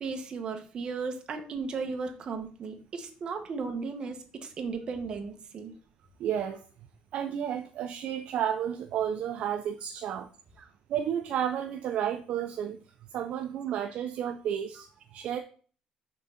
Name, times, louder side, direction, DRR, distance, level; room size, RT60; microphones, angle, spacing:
voice 1, 0.0-5.7 10.6-10.7, right 4 dB, 35° right, 5 dB, 1.0 m, -35 dB
voice 2, 6.2-6.6 7.1-10.3 10.9-12.8 13.1-15.4, right 9 dB, 55° right, 7 dB, 0.4 m, -32 dB
5.9 x 3.7 x 5.6 m, 0.41 s
cardioid pair, 180°, 3 cm